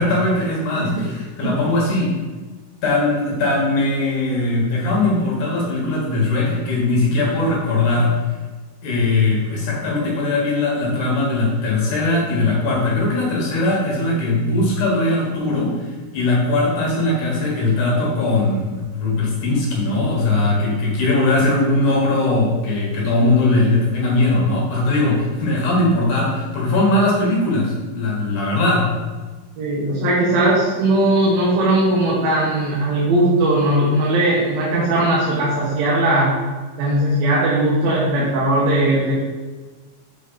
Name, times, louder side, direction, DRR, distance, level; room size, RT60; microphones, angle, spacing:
voice 1, 0.0-2.1 2.8-8.1 8.8-29.1, left 2 dB, 65° left, -3 dB, 2.9 m, -20 dB
voice 2, 0.7-1.0 1.4-1.6 29.6-36.4 36.8-39.1, right 1 dB, 75° right, -6 dB, 3.0 m, -18 dB
7.1 x 5.2 x 4.0 m, 1.3 s
omnidirectional pair, 4.2 m